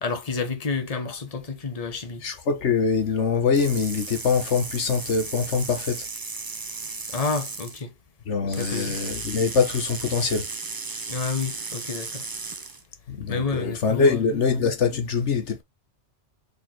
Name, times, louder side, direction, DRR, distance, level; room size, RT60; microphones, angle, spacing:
voice 1, 0.0-2.2 7.1-7.9 8.5-9.0 11.1-12.2 13.3-14.4, left 4 dB, 35° left, 1.2 m, -30 dB
voice 2, 2.2-6.0 8.3-10.5 13.1-15.6, left 5 dB, 90° left, 1.5 m, -24 dB
sound 1, 3.5-7.8 8.5-12.8, right 3 dB, 25° right, 0.6 m, -35 dB
5.4 x 4.3 x 4.4 m
omnidirectional pair, 1.2 m